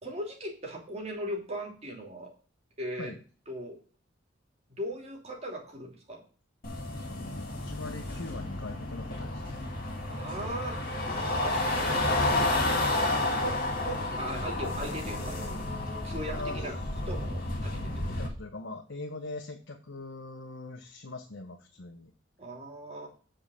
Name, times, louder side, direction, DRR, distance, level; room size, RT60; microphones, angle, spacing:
voice 1, 0.0-2.3 2.8-3.1 3.5-3.8 4.7-6.2 10.1-12.2 13.4-15.4 16.0-16.7 17.1-18.1 22.4-23.1, equal, 35° right, 0 dB, 2.9 m, -39 dB
sound 1, 6.6-18.3, left 2 dB, 50° left, 2.4 m, -31 dB
voice 2, 7.1-9.6 12.1-12.4 16.3-16.9 18.1-22.1, left 2 dB, 80° left, 3 dB, 1.1 m, -42 dB
8.1 x 5.1 x 6.1 m, 0.39 s
head